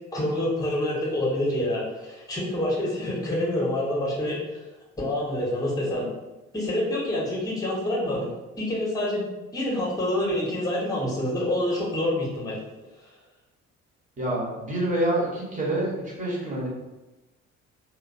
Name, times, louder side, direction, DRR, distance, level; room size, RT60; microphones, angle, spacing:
voice 1, 0.1-4.6 5.0-6.1 6.5-8.3 8.6-9.2 9.5-12.6, left 1 dB, 10° left, -4 dB, 0.9 m, -27 dB
voice 2, 14.2-16.7, right 1 dB, 20° right, -5 dB, 1.0 m, -27 dB
2.7 x 2.0 x 2.6 m, 1.1 s
figure-of-eight pair, 45°, 40 cm